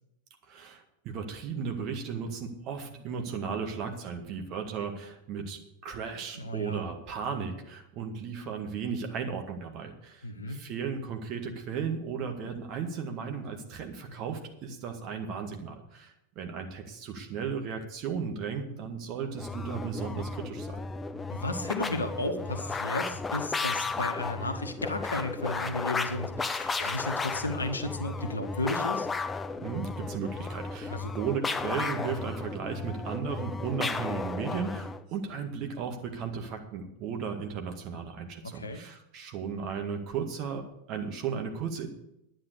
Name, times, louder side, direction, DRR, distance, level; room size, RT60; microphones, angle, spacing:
voice 1, 0.5-20.8 29.6-41.9, right 6 dB, 40° right, 5 dB, 1.9 m, -35 dB
voice 2, 6.3-6.9 10.2-10.6 21.3-29.1 30.9-31.1 38.4-38.8, left 2 dB, 75° left, 8 dB, 1.3 m, -34 dB
sound 1, 19.3-35.0, left 4 dB, 15° left, 0.6 m, -34 dB
10.5 x 9.3 x 6.7 m, 0.83 s
figure-of-eight pair, 90°, 0 cm